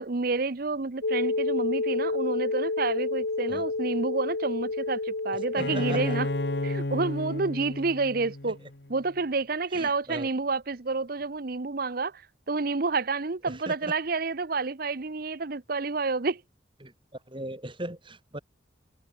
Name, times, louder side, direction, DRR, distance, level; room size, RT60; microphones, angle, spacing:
voice 1, 0.0-6.3 6.6-8.6 8.9-12.2 12.5-16.4, right 3 dB, 50° right, 0.8 m, -29 dB
sound 1, 1.0-6.8, left 3 dB, 85° left, 1.4 m, -30 dB
voice 2, 5.5-6.2 8.4-8.5 9.7-10.3 13.4-13.9 16.8-16.9 17.3-18.4, right 1 dB, 25° right, 4.6 m, -38 dB
Bowed string instrument, 5.6-9.2, left 1 dB, 60° left, 1.8 m, -33 dB
head